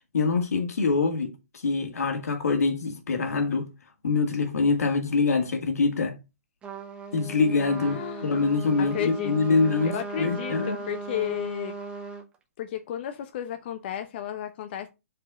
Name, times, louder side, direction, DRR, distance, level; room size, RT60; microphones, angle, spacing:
voice 1, 0.1-1.3 1.6-3.7 4.0-6.2 7.1-10.8, left 4 dB, 80° left, 2.0 m, -24 dB
Trumpet, 6.6-12.3, right 4 dB, 10° right, 0.8 m, -37 dB
voice 2, 7.8-8.5 8.8-11.7 12.6-14.9, left 11 dB, 40° left, 0.7 m, -33 dB
4.9 x 4.8 x 5.4 m
hypercardioid pair, 150°, 8 cm